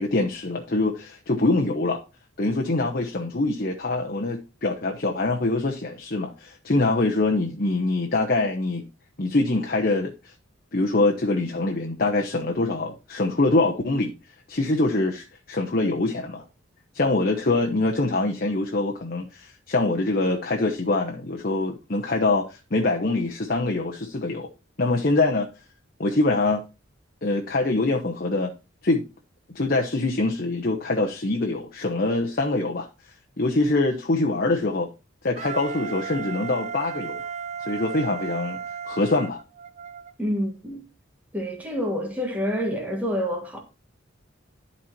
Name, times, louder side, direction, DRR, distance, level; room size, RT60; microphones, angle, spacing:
voice 1, 0.0-2.0 2.4-8.8 9.2-10.3 10.7-14.1 14.5-16.4 16.9-24.5 24.8-25.5 26.0-26.6 27.2-28.5 28.8-29.0 29.5-32.9 33.4-34.9 35.2-37.2 37.6-39.4, left 2 dB, 45° left, 1.0 m, -24 dB
Wind instrument woodwind instrument, 35.3-40.1, right 6 dB, 35° right, 0.6 m, -35 dB
voice 2, 40.2-40.8 41.3-43.6, equal, 10° right, 1.5 m, -27 dB
12.0 x 4.3 x 4.5 m
head